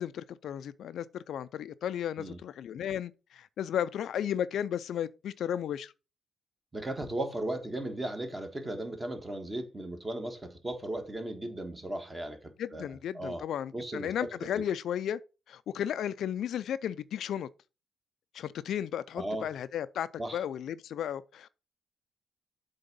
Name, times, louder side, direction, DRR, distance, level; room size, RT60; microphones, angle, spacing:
voice 1, 0.0-5.9 12.6-15.2 15.5-17.5 18.3-20.1 20.3-21.5, left 9 dB, 70° left, 0.3 m, -34 dB
voice 2, 6.7-12.9 13.1-13.4 13.7-14.5 19.2-19.5 20.2-20.4, right 1 dB, 15° right, 1.4 m, -36 dB
7.7 x 3.5 x 5.3 m
cardioid pair, 130°, 0 cm